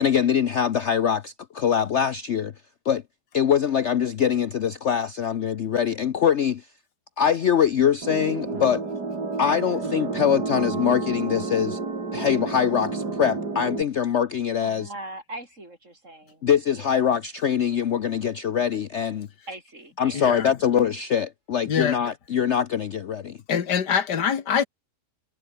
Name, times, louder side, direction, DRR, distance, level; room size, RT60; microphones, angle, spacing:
voice 1, 0.0-2.5 2.8-3.0 3.3-6.7 7.2-8.8 9.4-11.8 12.1-14.9 16.4-19.3 20.0-23.4, left 8 dB, 55° left, 0.9 m, -23 dB
sound 1, 8.0-13.8, right 3 dB, 75° right, 4.3 m, -30 dB
voice 2, 14.6-16.4 16.7-17.1 19.5-20.4, right 1 dB, 45° right, 7.1 m, -41 dB
voice 3, 20.1-20.5 21.7-22.0 23.5-24.6, left 7 dB, 90° left, 2.2 m, -24 dB
omnidirectional pair, 1.8 m